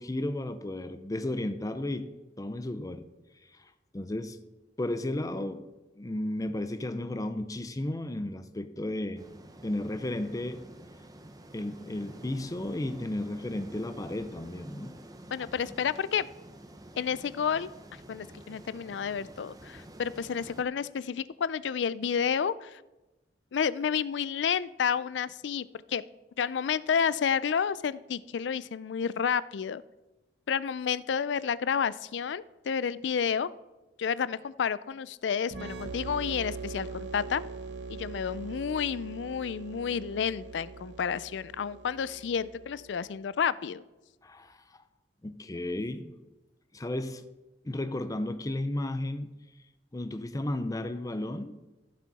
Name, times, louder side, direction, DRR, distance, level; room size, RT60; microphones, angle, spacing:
voice 1, 0.0-2.1 2.4-3.1 3.5-4.4 4.8-5.7 6.0-9.2 9.6-10.6 11.5-15.0 44.2-44.8 45.2-46.1 46.7-47.3 47.6-49.3 49.9-51.6, left 1 dB, 20° left, 0.5 m, -34 dB
sound 1, 9.2-20.6, right 1 dB, 20° right, 0.8 m, -49 dB
voice 2, 15.3-16.3 17.0-17.7 18.1-22.8 23.5-26.0 26.4-29.8 30.5-33.5 34.0-37.4 37.9-43.8, left 7 dB, 90° left, 0.4 m, -30 dB
sound 2, 35.5-43.0, right 4 dB, 80° right, 1.0 m, -42 dB
15.0 x 7.4 x 4.1 m
head